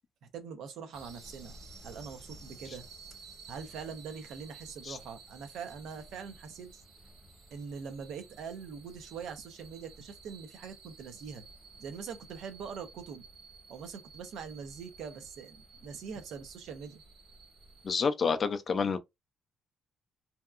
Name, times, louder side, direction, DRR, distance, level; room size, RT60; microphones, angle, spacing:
voice 1, 0.3-1.6 1.8-2.8 3.5-6.8 7.5-11.5 11.8-13.2 13.7-17.0, right 6 dB, 70° right, 0.6 m, -43 dB
sound 1, 0.9-17.9, right 3 dB, 45° right, 1.2 m, -53 dB
voice 2, 17.8-19.0, left 5 dB, 30° left, 0.3 m, -28 dB
2.7 x 2.2 x 2.3 m
cardioid pair, 160°, 0 cm